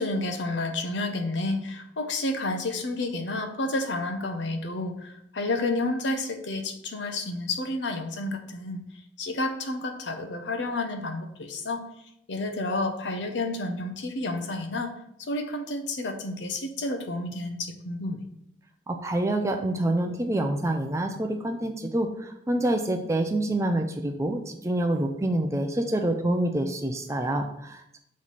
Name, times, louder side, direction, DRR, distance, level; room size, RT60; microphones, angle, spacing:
voice 1, 0.0-8.8 9.2-11.8 12.3-14.9 15.2-18.2, left 2 dB, 75° left, 6 dB, 0.7 m, -30 dB
voice 2, 18.9-28.0, right 1 dB, 15° right, 4 dB, 0.4 m, -27 dB
7.3 x 3.1 x 4.1 m, 0.76 s
head